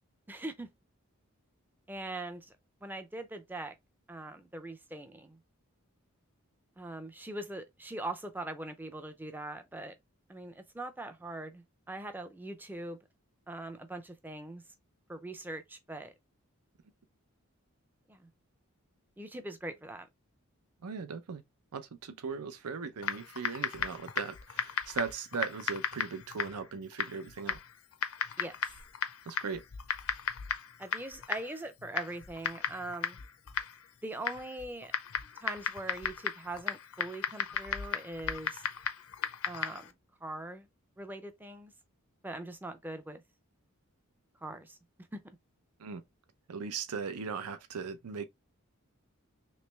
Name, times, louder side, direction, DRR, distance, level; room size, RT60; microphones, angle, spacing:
voice 1, 0.3-0.7 1.9-2.5 2.8-3.7 4.1-5.4 6.8-9.9 10.3-13.0 13.5-14.6 15.1-16.1 18.1-18.3 19.2-20.1 28.4-28.6 30.8-33.2 34.0-34.9 35.4-38.7 39.5-39.9 40.2-40.7 41.0-41.7 42.2-43.2 44.4-44.8 45.1-45.2, right 2 dB, 10° right, 0.4 m, -41 dB
voice 2, 20.8-21.4 21.7-27.6 29.3-29.6 45.8-46.0 46.5-48.3, right 5 dB, 90° right, 0.6 m, -38 dB
Typing, 23.0-39.9, left 7 dB, 75° left, 0.5 m, -36 dB
3.2 x 3.0 x 3.2 m
head